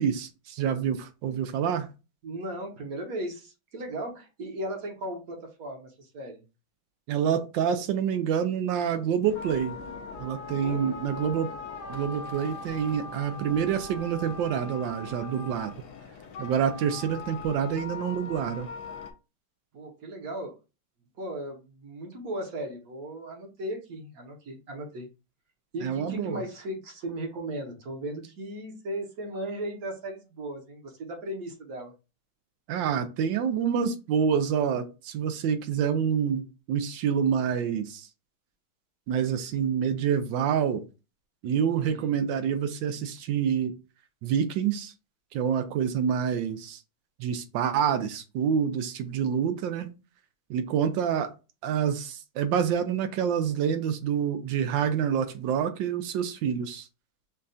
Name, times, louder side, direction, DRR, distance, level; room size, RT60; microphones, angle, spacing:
voice 1, 0.0-1.9 7.1-9.8 10.2-11.5 11.9-15.7 16.4-18.7 25.8-26.4 32.7-38.1 39.1-40.8 41.4-43.7 44.2-44.9 45.3-46.8 47.2-49.9 50.5-51.3 51.6-56.9, right 8 dB, 75° right, 1.1 m, -27 dB
voice 2, 2.2-6.4 10.6-11.0 19.7-20.6 21.2-25.1 25.7-31.9 41.8-42.2, right 1 dB, 55° right, 1.2 m, -37 dB
sound 1, 9.2-19.1, left 3 dB, 65° left, 1.1 m, -40 dB
5.3 x 2.3 x 2.6 m
omnidirectional pair, 2.3 m